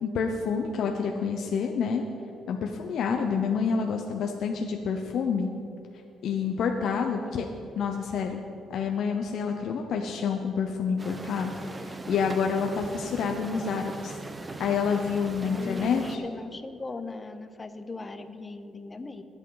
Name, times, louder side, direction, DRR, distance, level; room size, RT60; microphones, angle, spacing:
voice 1, 0.0-2.0 2.5-5.5 6.2-7.5 7.8-8.4 8.7-11.5 11.8-14.2 14.6-16.2, left 6 dB, 70° left, 3 dB, 0.8 m, -28 dB
sound 1, 11.0-16.2, right 2 dB, 25° right, 0.8 m, -39 dB
voice 2, 15.4-19.2, left 3 dB, 25° left, 10 dB, 0.9 m, -38 dB
21.5 x 8.2 x 4.0 m, 2.7 s
cardioid pair, 90°, 0 cm